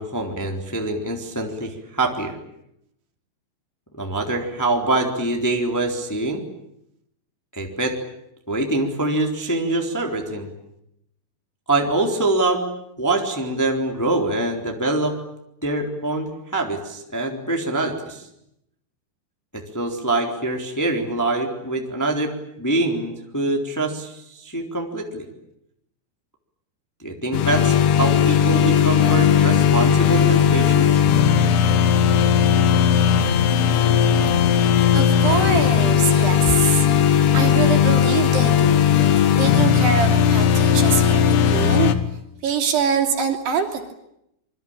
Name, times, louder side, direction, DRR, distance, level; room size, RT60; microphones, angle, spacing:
voice 1, 0.0-2.4 4.0-6.4 7.5-8.0 8.5-10.5 11.7-12.7 13.0-15.1 15.6-18.2 19.5-22.3 22.6-25.3 27.0-31.0, right 2 dB, 5° left, 2 dB, 2.9 m, -24 dB
sound 1, 27.3-42.0, left 8 dB, 65° left, 3.5 m, -17 dB
voice 2, 34.5-36.9 37.3-41.9 42.4-43.9, right 7 dB, 65° right, 2 dB, 5.0 m, -24 dB
27.5 x 24.0 x 8.8 m, 0.79 s
omnidirectional pair, 5.3 m